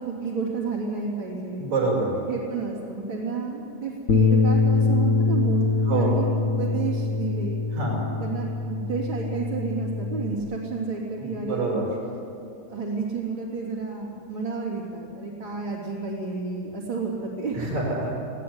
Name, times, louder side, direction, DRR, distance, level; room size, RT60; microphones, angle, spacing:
voice 1, 0.0-1.6 2.3-5.6 5.9-7.6 8.2-11.8 12.7-17.6, right 4 dB, 40° right, -6 dB, 3.7 m, -31 dB
voice 2, 1.6-2.2 5.8-6.2 7.7-8.0 11.2-11.9 17.5-18.1, right 3 dB, 60° right, -1 dB, 6.5 m, -26 dB
Bass guitar, 4.1-10.3, left 4 dB, 70° left, 0.7 m, -23 dB
27.0 x 18.0 x 9.7 m, 2.7 s
omnidirectional pair, 3.7 m